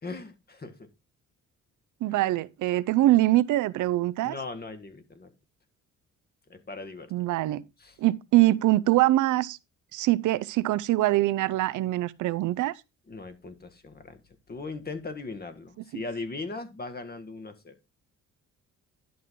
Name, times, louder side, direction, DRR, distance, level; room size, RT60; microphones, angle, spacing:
voice 1, 0.0-0.9 4.2-5.3 6.5-7.1 7.8-7.9 13.1-14.2 14.5-17.7, left 3 dB, 30° left, 1.7 m, -39 dB
voice 2, 2.0-4.4 7.1-7.6 8.0-9.6 9.9-12.7 15.9-16.0, right 16 dB, 80° right, 0.6 m, -23 dB
11.0 x 6.2 x 3.7 m
cardioid pair, 90°, 30 cm